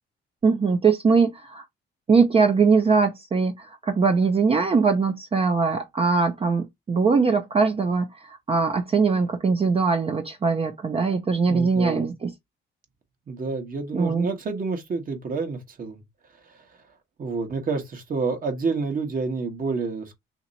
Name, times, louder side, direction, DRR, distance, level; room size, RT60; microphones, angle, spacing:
voice 1, 0.4-1.6 2.1-12.3 13.9-14.3, right 4 dB, 30° right, 0.5 m, -21 dB
voice 2, 11.4-12.1 13.3-16.0 16.5-16.6 17.2-20.2, right 4 dB, 45° right, 1.2 m, -29 dB
2.9 x 2.9 x 3.9 m
cardioid pair, 90°, 20 cm